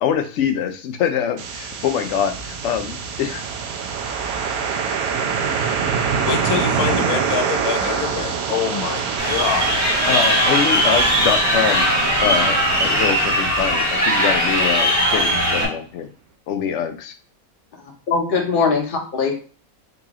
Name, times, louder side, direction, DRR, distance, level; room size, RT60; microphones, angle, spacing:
voice 1, 0.0-3.5 10.1-11.8 12.2-16.1 16.5-17.1 18.3-18.4, left 8 dB, 65° left, 7 dB, 0.8 m, -24 dB
sound 1, 1.4-15.3, right 6 dB, 90° right, 1.2 m, -26 dB
voice 2, 6.2-9.8, left 7 dB, 90° left, 6 dB, 1.2 m, -25 dB
Crowd, 9.2-15.6, equal, 15° right, 1.1 m, -19 dB
voice 3, 17.8-19.4, left 4 dB, 40° left, 1 dB, 1.0 m, -21 dB
3.9 x 2.9 x 3.6 m, 0.39 s
omnidirectional pair, 1.5 m